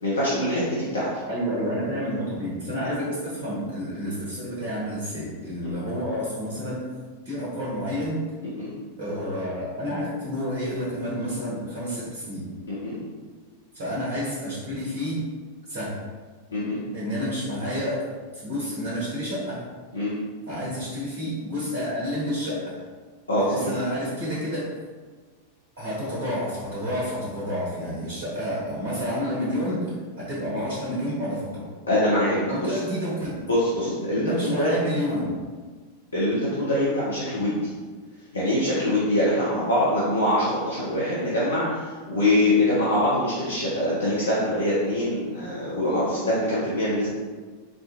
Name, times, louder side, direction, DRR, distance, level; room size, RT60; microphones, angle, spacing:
voice 1, 0.0-1.1 8.4-8.7 12.7-13.0 16.5-16.8 19.9-20.1 23.3-23.7 31.9-32.4 32.7-32.8 33.5-34.7 36.1-37.7 38.3-47.1, left 1 dB, 75° left, -9 dB, 0.8 m, -24 dB
voice 2, 1.3-6.8 7.2-8.2 9.0-12.5 13.7-15.2 15.7-16.0 16.9-19.6 20.5-22.7 23.4-24.8 25.8-31.7 32.4-33.4 34.2-35.3, equal, 55° right, -6 dB, 1.1 m, -29 dB
4.2 x 2.4 x 2.9 m, 1.4 s
figure-of-eight pair, 90°, 0 cm